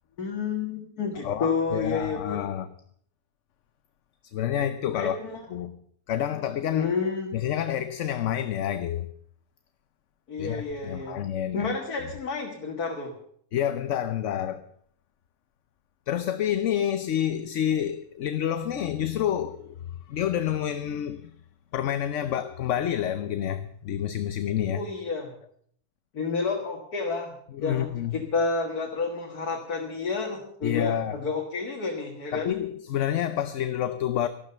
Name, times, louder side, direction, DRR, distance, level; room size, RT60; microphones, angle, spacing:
voice 1, 0.2-2.4 4.9-5.5 6.7-7.3 10.3-11.2 11.5-13.2 24.7-25.3 26.1-27.3 27.6-32.6, left 4 dB, 85° left, 2.3 m, -30 dB
voice 2, 1.2-2.7 4.2-5.2 5.5-5.8 6.1-6.9 7.3-9.1 10.4-11.7 13.5-14.6 16.1-19.8 20.1-21.4 21.7-24.8 27.5-28.2 30.6-31.2 32.3-34.3, left 10 dB, 60° left, 1.0 m, -28 dB
13.5 x 12.5 x 6.7 m
omnidirectional pair, 1.6 m